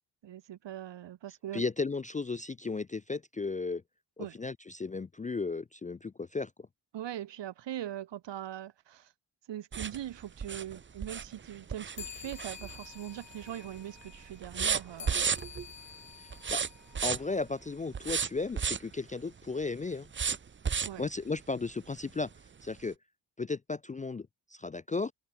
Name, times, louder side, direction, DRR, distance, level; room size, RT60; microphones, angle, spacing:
voice 1, 0.2-1.6 4.2-4.3 6.9-9.1 9.5-15.3 20.8-21.1, right 11 dB, 65° right, 1.0 m, -41 dB
voice 2, 1.5-3.8 4.2-6.5 16.2-16.6 17.0-20.1 21.0-22.3 22.6-22.9 23.4-25.1, left 3 dB, 20° left, 0.3 m, -35 dB
sound 1, 9.7-13.1 13.4-13.8 14.1-15.7 16.3-17.4 17.9-18.9 20.1-21.1 21.6-21.7 22.1-22.2, right 6 dB, 25° right, 0.6 m, -33 dB
sound 2, 11.9-17.8, left 8 dB, 65° left, 2.6 m, -50 dB
cardioid pair, 60°, 47 cm